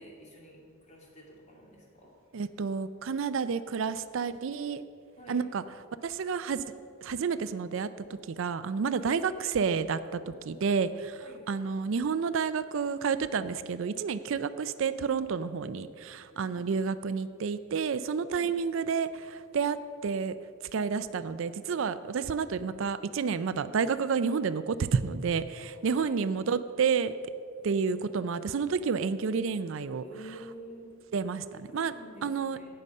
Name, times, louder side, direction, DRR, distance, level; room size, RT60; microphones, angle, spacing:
voice 1, 0.0-2.1 5.2-5.4 9.0-9.1 11.2-11.4 18.3-18.5 26.0-26.2 30.0-30.9 31.5-32.7, right 1 dB, 35° left, -2 dB, 2.4 m, -49 dB
voice 2, 2.3-4.8 5.3-5.6 6.0-6.6 7.0-7.9 8.3-20.3 20.7-27.1 27.6-30.0 31.1-31.4 31.7-31.9 32.2-32.7, right 5 dB, 65° right, 13 dB, 0.4 m, -30 dB
17.5 x 6.6 x 5.4 m, 2.3 s
head